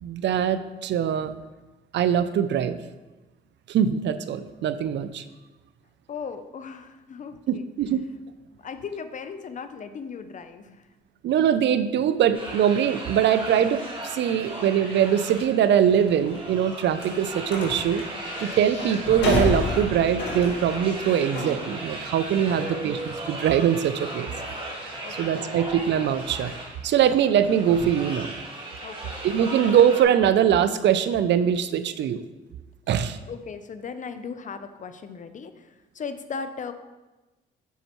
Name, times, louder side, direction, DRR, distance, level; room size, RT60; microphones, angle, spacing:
voice 1, 0.0-1.3 1.9-2.8 3.7-5.2 7.5-8.0 11.2-18.0 18.4-24.3 25.2-26.5 26.8-28.3 29.2-32.2 32.9-33.2, right 9 dB, 65° right, 12 dB, 0.5 m, -22 dB
voice 2, 6.1-7.7 8.5-10.9 22.4-23.0 25.0-25.9 28.8-29.2 33.3-36.7, left 5 dB, 40° left, 10 dB, 0.6 m, -38 dB
sound 1, 12.3-30.0, right 1 dB, 25° right, 1.7 m, -37 dB
sound 2, 15.9-27.9, left 2 dB, 65° left, 1.8 m, -34 dB
8.1 x 5.5 x 3.0 m, 1.1 s
cardioid pair, 90°, 20 cm